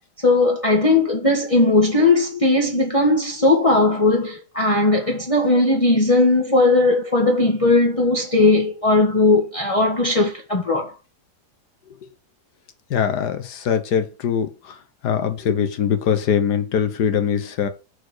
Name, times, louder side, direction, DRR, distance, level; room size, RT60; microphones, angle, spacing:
voice 1, 0.2-10.9, left 2 dB, 20° left, 1.8 m, -18 dB
voice 2, 12.9-14.8 15.0-17.7, left 7 dB, 75° left, 1.8 m, -22 dB
7.1 x 4.7 x 6.4 m
omnidirectional pair, 1.8 m